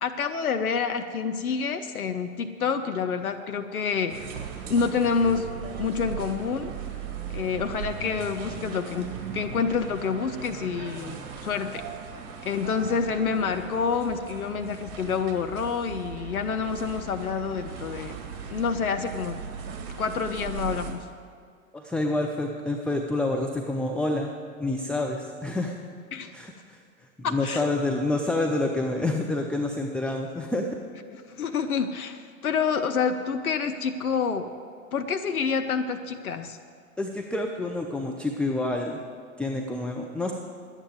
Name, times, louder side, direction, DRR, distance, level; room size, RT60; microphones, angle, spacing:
voice 1, 0.0-4.2 4.7-5.5 5.8-6.7 7.3-11.8 12.4-18.2 18.5-19.4 20.0-21.1 26.1-26.3 27.2-27.7 31.1-34.5 34.9-36.6, left 6 dB, 85° left, 7 dB, 0.7 m, -28 dB
sound 1, 4.1-20.9, right 7 dB, 50° right, 2.0 m, -38 dB
voice 2, 21.7-24.3 24.6-25.7 26.3-26.8 27.2-30.6 37.0-39.0 39.4-40.3, left 2 dB, 5° left, 1 dB, 0.5 m, -28 dB
11.0 x 9.0 x 8.0 m, 2.2 s
hypercardioid pair, 100°, 42 cm